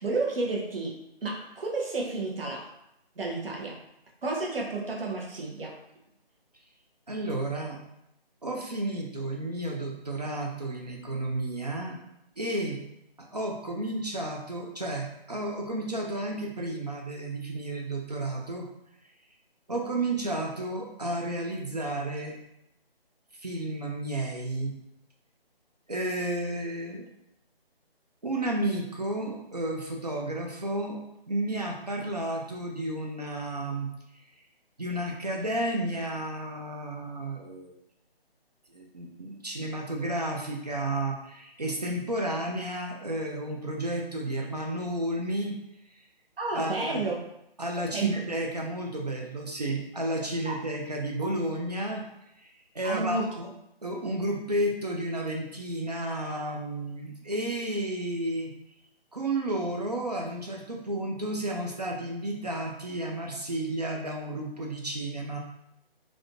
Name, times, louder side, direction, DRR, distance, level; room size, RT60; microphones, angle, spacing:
voice 1, 0.0-2.7 3.2-3.8 4.2-5.7 46.4-47.2 47.9-48.1 50.5-50.6 52.8-53.3, right 3 dB, 65° right, -2 dB, 1.0 m, -31 dB
voice 2, 7.1-7.8 8.4-12.0 12.4-12.8 13.2-18.7 19.7-22.4 23.4-24.7 25.9-27.1 28.2-33.9 34.1-34.2 34.8-37.7 38.7-45.5 46.0-46.1 46.5-47.1 47.6-52.0 52.4-53.5 53.8-58.5 59.1-65.4, right 1 dB, 45° right, 0 dB, 0.4 m, -32 dB
3.4 x 2.4 x 2.4 m, 0.80 s
figure-of-eight pair, 165°, 31 cm